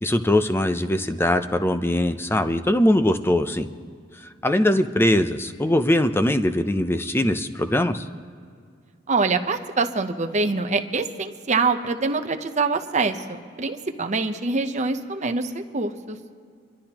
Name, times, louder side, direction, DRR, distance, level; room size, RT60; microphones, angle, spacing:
voice 1, 0.0-3.7 4.2-8.1, left 1 dB, 10° left, 9 dB, 0.5 m, -21 dB
voice 2, 9.1-16.2, right 3 dB, 40° right, 6 dB, 0.8 m, -25 dB
27.0 x 12.0 x 2.9 m, 2.2 s
head